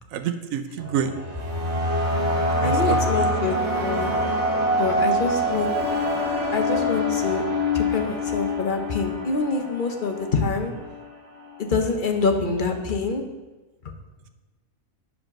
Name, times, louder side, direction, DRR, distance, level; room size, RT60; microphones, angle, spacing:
voice 1, 0.1-1.1 2.6-3.3, right 8 dB, 75° right, 8 dB, 1.0 m, -28 dB
sound 1, 0.8-11.0, left 1 dB, 55° right, 1.7 m, -25 dB
voice 2, 2.6-4.1 4.7-5.7 6.5-7.4 7.7-10.7 11.6-13.2, left 4 dB, 45° left, 5 dB, 0.9 m, -26 dB
8.4 x 5.1 x 6.0 m, 1.2 s
omnidirectional pair, 1.5 m